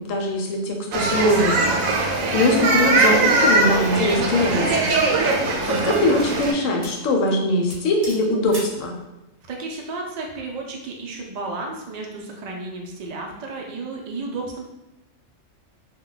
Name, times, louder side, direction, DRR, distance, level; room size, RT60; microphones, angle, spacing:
voice 1, 0.0-1.6 2.3-4.8 5.7-8.9, left 1 dB, 80° left, 1 dB, 1.0 m, -21 dB
sound 1, 0.9-6.5, right 3 dB, 90° right, 1.0 m, -20 dB
sound 2, 5.8-6.4 6.8-7.1 7.3-7.4 7.7-8.8, right 1 dB, 35° right, 0.7 m, -40 dB
voice 2, 9.5-14.6, right 3 dB, 60° right, 0 dB, 0.4 m, -33 dB
2.3 x 2.2 x 3.8 m, 0.97 s
omnidirectional pair, 1.3 m